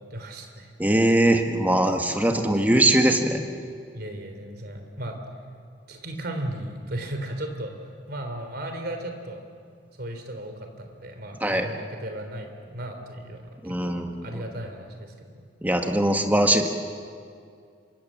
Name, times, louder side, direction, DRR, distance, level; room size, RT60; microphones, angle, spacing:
voice 1, 0.0-0.7 2.3-2.9 3.9-5.2 5.9-7.8 8.1-9.5 9.9-15.3, right 1 dB, 55° right, 6 dB, 3.4 m, -36 dB
voice 2, 0.8-3.4 11.4-11.7 13.6-14.3 15.6-16.7, right 1 dB, 10° right, 4 dB, 1.6 m, -21 dB
27.0 x 24.0 x 7.5 m, 2.3 s
head